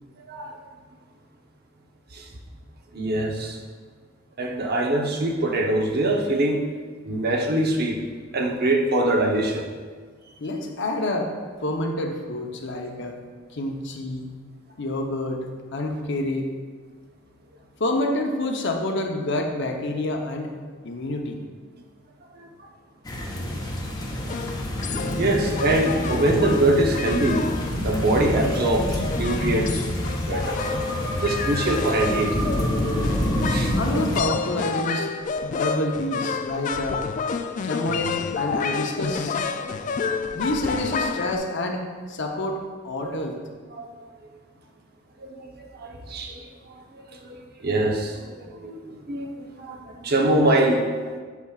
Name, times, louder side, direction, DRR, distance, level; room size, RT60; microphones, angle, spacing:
voice 1, 0.3-0.6 2.1-2.3 2.9-3.6 4.4-6.6 7.0-8.0 8.3-9.7 22.3-22.5 24.8-27.5 27.8-29.9 30.3-30.6 31.1-32.7 33.5-33.7 35.5-35.6 39.6-40.2 43.0-43.1 43.7-43.9 45.2-51.2, right 1 dB, 50° right, 2 dB, 0.8 m, -24 dB
voice 2, 10.4-11.3 11.6-13.2 13.5-14.3 14.8-15.5 15.7-16.5 17.8-20.5 20.8-21.4 33.8-35.1 35.5-37.0 37.6-39.4 40.3-42.6 42.8-43.4, left 1 dB, 60° left, 3 dB, 0.8 m, -27 dB
sound 1, 23.1-34.2, equal, 20° left, 0.9 m, -28 dB
sound 2, 24.3-41.4, left 5 dB, 40° left, 0.3 m, -30 dB
sound 3, 30.3-34.4, equal, 5° right, 1.4 m, -34 dB
8.2 x 7.0 x 2.4 m, 1.5 s
head